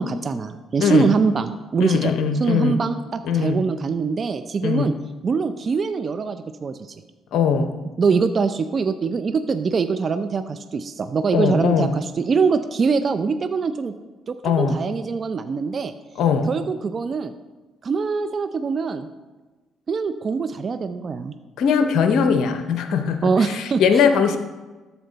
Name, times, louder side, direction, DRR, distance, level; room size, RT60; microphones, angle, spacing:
voice 1, 0.0-2.1 2.4-4.9 5.2-6.8 8.0-13.9 14.3-15.9 16.5-17.3 17.8-19.1 19.9-21.3 23.2-24.0, right 5 dB, 45° right, 10 dB, 0.5 m, -23 dB
voice 2, 0.8-1.1 1.8-2.8 3.2-3.7 4.6-4.9 7.3-7.7 11.3-11.9 14.4-14.8 16.2-16.5 21.6-24.4, left 6 dB, 70° left, 7 dB, 0.6 m, -20 dB
13.0 x 4.4 x 4.0 m, 1.2 s
supercardioid pair, 60°, 0 cm